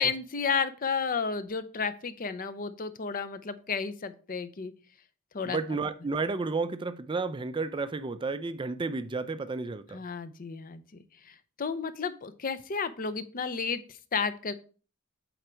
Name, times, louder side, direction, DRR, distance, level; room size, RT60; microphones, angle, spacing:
voice 1, 0.0-4.7 5.3-5.6 9.9-14.5, left 5 dB, 40° left, 0.5 m, -32 dB
voice 2, 5.4-10.0, right 3 dB, 20° right, 0.4 m, -32 dB
7.9 x 3.9 x 4.4 m
head